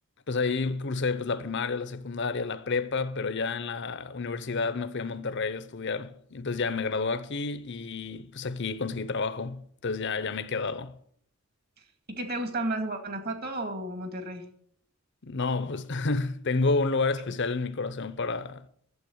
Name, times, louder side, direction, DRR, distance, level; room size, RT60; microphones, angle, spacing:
voice 1, 0.3-10.9 15.2-18.7, left 4 dB, 55° left, 0.8 m, -30 dB
voice 2, 12.1-14.5, right 2 dB, 50° right, 2.2 m, -32 dB
12.0 x 7.8 x 8.0 m
head